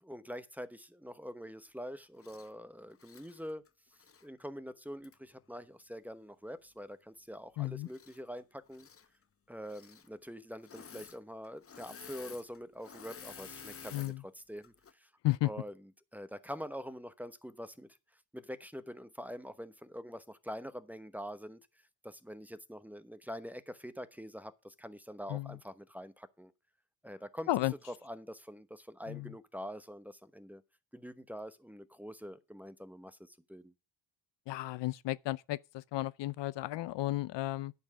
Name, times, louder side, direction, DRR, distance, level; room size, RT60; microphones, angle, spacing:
voice 1, 0.0-3.6 4.2-8.9 9.5-15.1 15.4-17.9 18.3-21.6 22.0-26.5 27.0-27.5 28.0-30.6 30.9-33.7, equal, 5° right, 0.9 m, -45 dB
Engine / Mechanisms, 2.2-2.5 2.9-4.3 5.0-5.1 7.8-8.4 8.7-9.1 9.6-10.1 10.6-11.2 11.4-14.1 14.6-14.9, left 6 dB, 30° left, 0.9 m, -51 dB
voice 2, 7.6-7.9 13.9-14.2 15.2-15.5 25.3-25.6 27.5-27.7 29.1-29.3 34.5-37.7, left 17 dB, 65° left, 0.6 m, -33 dB
10.5 x 4.6 x 7.4 m
supercardioid pair, 70°, 48 cm